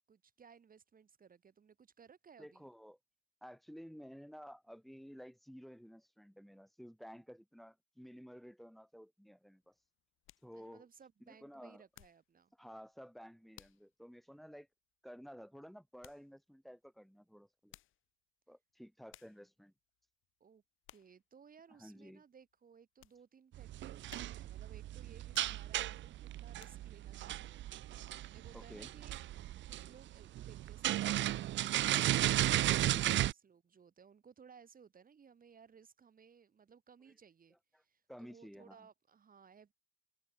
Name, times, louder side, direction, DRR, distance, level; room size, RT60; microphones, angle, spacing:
voice 1, 0.1-2.7 10.5-12.5 20.4-20.6 20.9-27.7 27.9-29.2 29.7-39.7, right 6 dB, 45° right, 5.9 m, -61 dB
voice 2, 2.4-3.0 3.4-9.7 10.4-10.8 11.3-11.8 12.6-14.7 15.0-17.8 18.5-19.7 21.8-22.2 28.5-28.9 32.9-33.2 37.7-37.8 38.1-38.9, equal, ahead, 7.5 m, -53 dB
sound 1, 9.6-12.3 12.7-13.0 13.5-13.9 14.4-14.5 16.0-16.3 17.5-18.1 18.7-18.8 19.1-19.5 20.0-20.3 20.8-21.2 21.7-21.8 22.3-23.2 23.6-23.7 24.1-24.6 25.2-25.9 26.3-27.1 27.6-27.7, left 14 dB, 85° left, 6.6 m, -61 dB
sound 2, 23.5-33.3, right 14 dB, 70° right, 0.6 m, -35 dB
cardioid pair, 90°, 20 cm